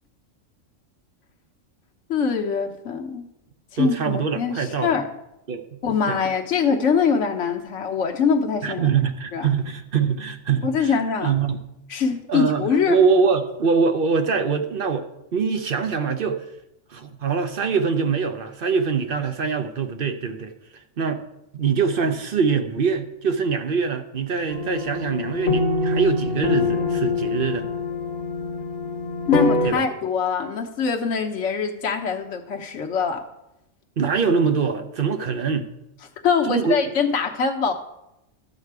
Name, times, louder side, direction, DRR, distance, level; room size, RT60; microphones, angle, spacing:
voice 1, 2.1-3.2 3.7-5.1 5.8-8.8 9.3-9.5 10.6-11.3 11.9-13.0 29.3-33.2 36.2-37.7, left 6 dB, 65° left, 3 dB, 1.3 m, -23 dB
voice 2, 3.8-4.9 5.5-5.8 6.1-6.2 8.6-10.9 11.2-11.6 12.3-15.1 15.3-16.4 16.9-20.5 21.0-21.2 21.5-27.7 29.6-29.8 34.0-35.7 36.5-36.8, right 5 dB, 50° right, 8 dB, 0.8 m, -23 dB
sound 1, 24.5-29.7, left 3 dB, 40° left, 1.2 m, -25 dB
12.0 x 7.7 x 4.7 m, 0.87 s
omnidirectional pair, 1.4 m